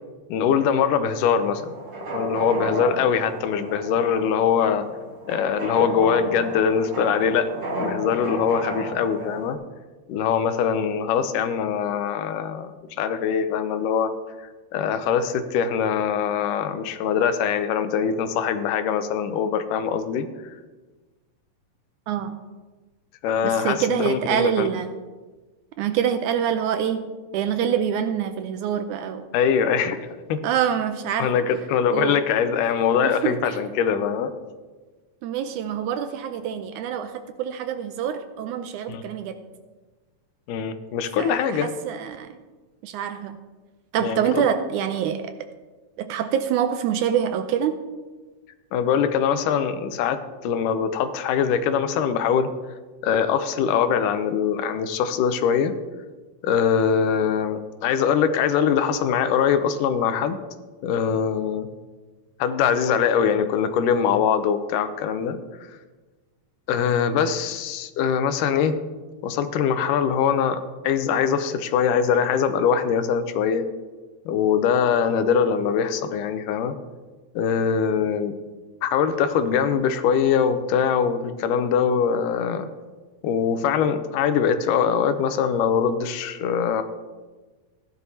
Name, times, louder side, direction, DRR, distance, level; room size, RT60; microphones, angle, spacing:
voice 1, 0.3-1.7 2.1-4.9 5.3-7.5 7.8-9.6 10.1-14.1 14.7-20.6 23.2-24.7 29.3-30.4 31.2-34.3 38.9-39.0 40.5-41.7 44.0-44.5 48.7-52.5 53.0-55.7 56.4-60.4 60.8-61.7 62.4-65.4 66.7-68.8 69.2-73.6 74.3-76.8 77.4-78.3 78.8-82.7 83.2-86.8, left 7 dB, 80° left, 10 dB, 2.2 m, -22 dB
sound 1, 1.4-9.5, right 1 dB, 40° right, 1.2 m, -33 dB
voice 2, 22.1-22.4 23.4-24.9 25.8-27.0 27.3-29.2 30.4-31.3 31.9-32.2 33.0-33.4 35.2-37.1 37.4-39.4 41.2-41.4 41.9-42.3 42.8-43.4 43.9-45.3 46.0-47.8, right 9 dB, 80° right, 8 dB, 1.9 m, -25 dB
15.5 x 11.0 x 2.8 m, 1.3 s
omnidirectional pair, 3.8 m